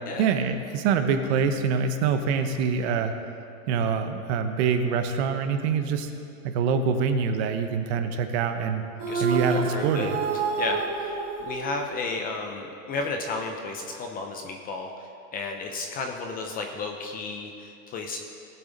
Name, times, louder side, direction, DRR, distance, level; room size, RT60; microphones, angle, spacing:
voice 1, 0.2-3.1 3.7-6.1 6.4-8.8 9.2-10.2, right 6 dB, 45° right, 7 dB, 1.0 m, -25 dB
sound 1, 9.0-12.4, right 4 dB, 30° right, 1.2 m, -29 dB
voice 2, 9.5-10.1 10.6-18.2, left 3 dB, 20° left, 3 dB, 0.6 m, -33 dB
18.5 x 7.7 x 3.9 m, 2.5 s
hypercardioid pair, 140°, 46 cm